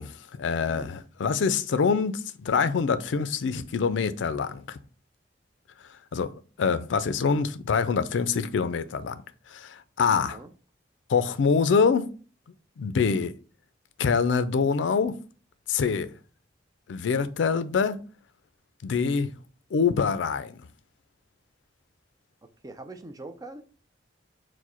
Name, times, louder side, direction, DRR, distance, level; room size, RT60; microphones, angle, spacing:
voice 1, 0.0-4.8 6.1-9.2 9.5-10.4 11.1-12.1 12.8-13.3 14.0-15.2 15.7-16.1 16.9-18.0 18.8-19.3 19.7-20.6, left 5 dB, 85° left, 0.4 m, -25 dB
voice 2, 0.5-0.9 10.2-10.5 22.6-23.6, right 2 dB, 20° right, 0.4 m, -42 dB
4.6 x 2.1 x 4.3 m
head